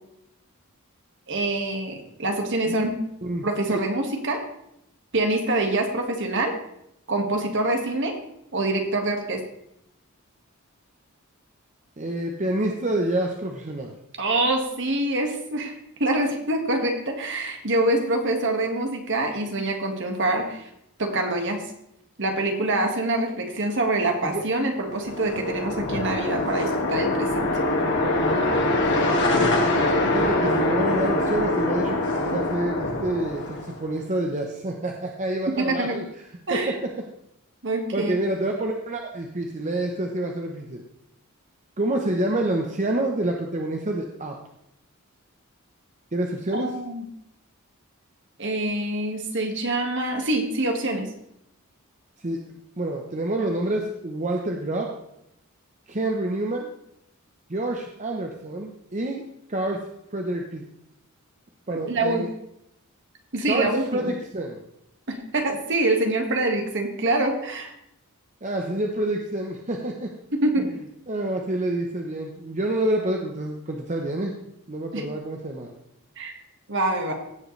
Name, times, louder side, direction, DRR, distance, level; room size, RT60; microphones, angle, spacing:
voice 1, 1.3-3.0 3.4-4.4 5.1-6.5 7.1-8.2 8.5-9.4 14.2-20.7 21.0-21.6 22.2-27.5 35.5-36.0 36.5-36.8 37.6-38.2 46.5-47.0 48.4-51.1 61.7-62.3 63.3-64.1 65.1-67.7 70.3-70.7 74.9-75.0 76.2-76.3 76.7-77.1, right 2 dB, 55° right, 3 dB, 1.8 m, -25 dB
voice 2, 3.2-3.8 12.0-14.0 24.3-24.4 30.0-36.0 36.5-36.7 37.9-40.8 41.8-44.3 46.1-46.7 52.2-54.9 55.9-56.7 57.5-59.2 59.5-59.8 60.1-60.6 61.7-62.3 63.5-64.6 68.4-70.2 70.6-70.7 71.1-74.4 74.7-75.7, right 1 dB, 35° right, 1 dB, 0.9 m, -28 dB
sound 1, 24.8-33.9, left 2 dB, 55° left, 2.0 m, -24 dB
16.5 x 7.8 x 3.3 m, 0.78 s
head